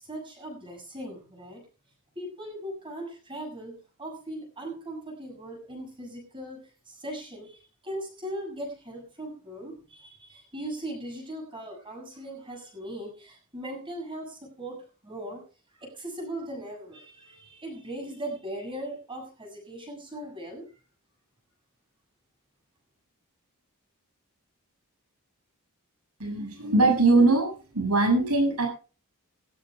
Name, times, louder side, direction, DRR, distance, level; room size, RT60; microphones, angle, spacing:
voice 1, 0.0-1.6 2.2-15.4 15.8-20.7, right 1 dB, 20° right, 3 dB, 7.1 m, -39 dB
voice 2, 26.2-27.5 27.7-28.7, right 2 dB, 90° right, 4 dB, 7.4 m, -21 dB
19.0 x 16.5 x 2.3 m, 0.35 s
head